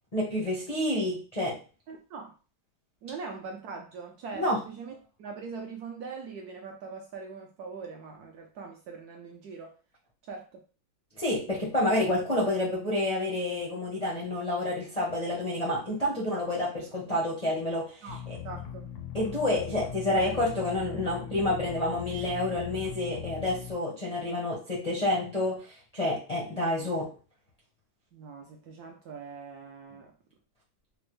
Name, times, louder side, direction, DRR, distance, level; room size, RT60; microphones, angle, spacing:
voice 1, 0.1-1.6 4.3-4.6 11.1-18.4 19.1-27.1, left 1 dB, 55° left, -5 dB, 0.4 m, -29 dB
voice 2, 1.9-2.3 3.0-9.8 10.2-10.6 18.0-18.9 26.5-26.9 28.1-30.1, right 5 dB, 80° right, 2 dB, 0.8 m, -42 dB
sound 1, 18.1-23.7, left 9 dB, 80° left, 0.8 m, -40 dB
4.2 x 2.0 x 3.0 m, 0.36 s
omnidirectional pair, 2.2 m